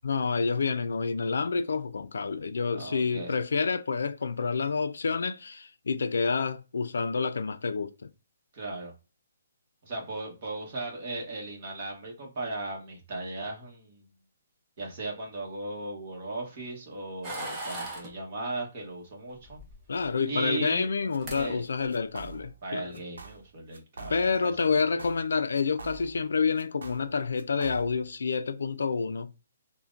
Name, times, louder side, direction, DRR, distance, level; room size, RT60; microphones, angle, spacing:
voice 1, 0.0-8.1 19.9-22.9 24.1-29.3, left 5 dB, 75° left, 0.4 m, -28 dB
voice 2, 2.7-3.3 8.5-8.9 9.8-14.1 14.8-19.6 20.3-20.9 21.3-21.6 22.6-25.0, right 2 dB, 30° right, 1.1 m, -37 dB
sound 1, 17.2-18.1 19.4-20.1 20.9-21.0 21.2-21.4 21.8-22.2, right 2 dB, 15° right, 0.6 m, -38 dB
sound 2, 21.1-21.6 21.9-22.6 22.9-23.5 23.7-24.5 24.7-26.3 26.6-28.1, right 6 dB, 85° right, 0.8 m, -46 dB
5.7 x 2.2 x 2.5 m
hypercardioid pair, 175°, 0 cm